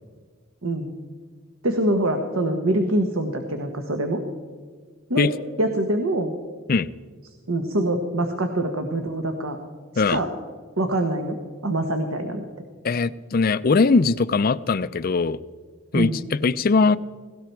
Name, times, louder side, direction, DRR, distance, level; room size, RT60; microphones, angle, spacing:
voice 1, 0.6-0.9 1.6-4.2 5.1-5.3 5.6-6.3 7.5-9.6 9.9-10.3 10.8-11.4 11.6-12.4 15.9-16.2, right 1 dB, 75° right, 5 dB, 1.4 m, -24 dB
voice 2, 12.8-15.4 15.9-17.0, left 4 dB, 45° left, 16 dB, 0.4 m, -20 dB
18.0 x 17.0 x 4.6 m, 1.6 s
head